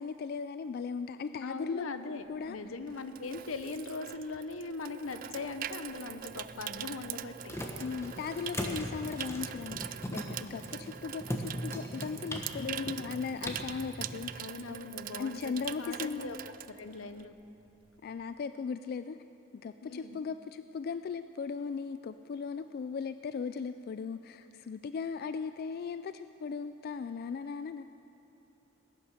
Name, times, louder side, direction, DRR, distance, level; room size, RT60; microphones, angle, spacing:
voice 1, 0.0-1.9 2.3-2.6 7.8-14.4 15.2-16.3 18.0-19.2 19.6-27.8, left 5 dB, 50° left, 11 dB, 0.3 m, -37 dB
voice 2, 1.4-7.6 12.6-13.2 14.4-17.4 19.8-20.2, left 3 dB, 80° left, 10 dB, 0.8 m, -40 dB
Water tap faucet / Sink (filling or washing), 2.3-17.4 17.7-18.0, right 10 dB, 45° right, 0.3 m, -43 dB
sound 1, 6.3-14.2, equal, 15° left, 1.3 m, -40 dB
19.5 x 10.5 x 6.4 m, 2.9 s
head